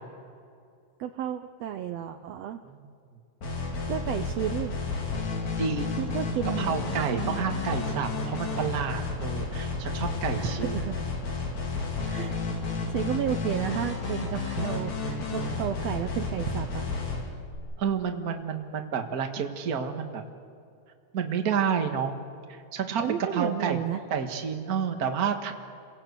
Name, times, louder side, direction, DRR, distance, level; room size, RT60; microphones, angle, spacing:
voice 1, 1.0-2.6 3.9-4.8 6.0-6.7 7.1-7.5 10.4-11.0 12.1-12.4 12.9-16.8 23.0-24.0, right 10 dB, 70° right, 7 dB, 1.7 m, -32 dB
sound 1, 3.4-17.6, left 3 dB, 70° left, 4.6 m, -31 dB
voice 2, 5.6-6.1 6.4-11.0 17.8-20.2 21.1-22.1 22.5-23.8 24.1-25.5, right 6 dB, 40° right, 4 dB, 1.5 m, -30 dB
29.5 x 17.5 x 8.2 m, 2.5 s
omnidirectional pair, 3.5 m